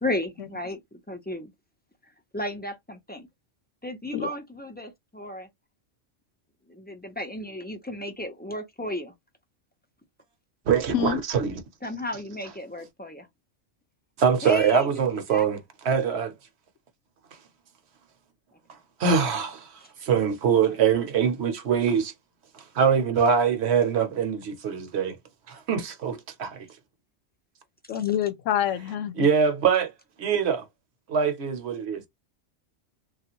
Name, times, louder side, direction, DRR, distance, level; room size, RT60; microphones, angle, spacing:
voice 1, 0.0-0.8 1.1-1.5 2.3-3.3 3.8-5.5 6.7-9.1 11.8-13.3 14.4-15.5 27.9-28.0, left 1 dB, 15° left, 0.4 m, -34 dB
voice 2, 10.7-11.6 14.2-16.3 19.0-19.7 20.0-22.1 22.5-25.2 25.5-26.7 29.2-29.9 30.2-30.6 31.1-32.1, right 6 dB, 65° right, 0.9 m, -23 dB
voice 3, 27.9-29.3, left 10 dB, 90° left, 1.0 m, -26 dB
3.2 x 2.4 x 2.9 m
omnidirectional pair, 1.3 m